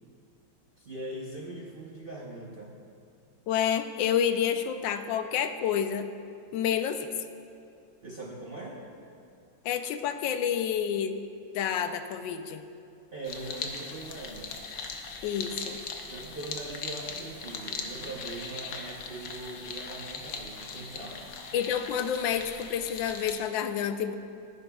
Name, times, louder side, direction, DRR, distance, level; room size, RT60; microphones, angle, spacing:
voice 1, 0.8-2.7 8.0-8.8 13.1-14.7 16.1-21.4, right 2 dB, 45° right, -3 dB, 0.7 m, -41 dB
voice 2, 3.5-6.1 6.5-7.1 9.6-11.2 11.5-12.6 15.2-15.8 21.5-24.2, left 8 dB, 85° left, 8 dB, 1.3 m, -29 dB
sound 1, 13.2-23.4, left 4 dB, 65° left, 1.2 m, -39 dB
13.5 x 10.5 x 2.3 m, 2.4 s
omnidirectional pair, 2.0 m